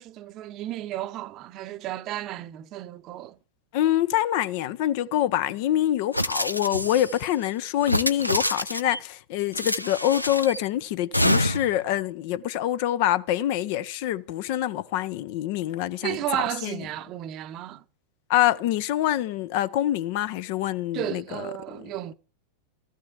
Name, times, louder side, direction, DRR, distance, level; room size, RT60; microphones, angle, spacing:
voice 1, 0.0-3.4 16.0-17.8 20.9-22.1, right 14 dB, 35° right, 0.8 m, -33 dB
voice 2, 3.7-16.8 18.3-21.5, left 12 dB, 50° left, 0.6 m, -25 dB
sound 1, 6.1-7.2 7.8-9.0 9.5-10.6 11.1-11.8, equal, 90° left, 0.6 m, -26 dB
14.5 x 6.4 x 7.9 m
figure-of-eight pair, 90°, 0 cm